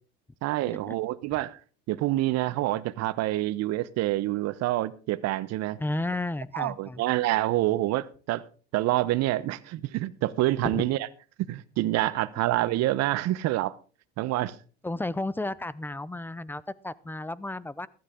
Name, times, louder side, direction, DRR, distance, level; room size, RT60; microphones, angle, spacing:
voice 1, 0.4-1.6 1.9-5.8 6.5-8.4 8.7-11.1 11.4-13.7 14.2-14.6, right 16 dB, 55° right, 17 dB, 1.0 m, -27 dB
voice 2, 5.8-7.0 10.6-10.8 14.8-17.9, left 2 dB, 5° left, 20 dB, 0.5 m, -32 dB
15.0 x 12.5 x 3.7 m, 0.38 s
supercardioid pair, 95°, 32 cm